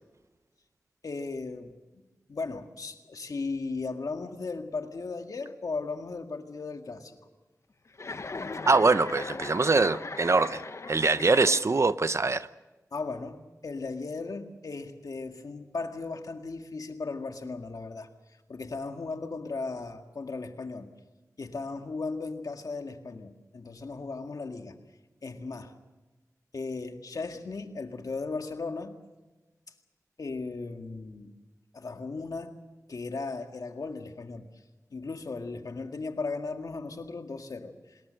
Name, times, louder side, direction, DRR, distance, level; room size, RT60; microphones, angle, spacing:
voice 1, 1.0-2.0 2.3-7.3 12.9-18.1 18.5-20.9 21.4-24.8 25.2-25.7 26.5-29.0 30.2-31.4 31.7-32.5 32.9-34.5 34.9-38.0, left 3 dB, 75° left, 1.9 m, -36 dB
Chuckle chortle, 7.9-12.0, left 3 dB, 50° left, 0.9 m, -39 dB
voice 2, 8.7-10.6 10.9-12.5, right 3 dB, 50° right, 0.8 m, -23 dB
26.0 x 20.5 x 6.5 m
wide cardioid pair, 75°, 6 cm